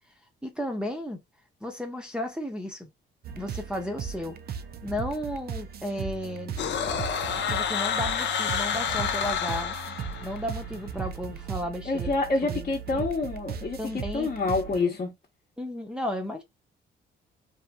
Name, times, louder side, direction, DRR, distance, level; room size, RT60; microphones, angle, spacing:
voice 1, 0.4-1.2 1.6-2.9 3.4-4.4 4.8-6.5 7.5-9.8 10.2-12.2 12.5-13.1 13.8-14.3 15.6-16.4, left 1 dB, 5° right, 0.7 m, -34 dB
sound 1, 3.2-14.8, right 7 dB, 50° right, 0.5 m, -37 dB
sound 2, 6.6-10.6, left 7 dB, 65° left, 0.6 m, -29 dB
voice 2, 11.9-15.1, left 3 dB, 40° left, 0.9 m, -27 dB
2.8 x 2.5 x 2.2 m
cardioid pair, 90°, 20 cm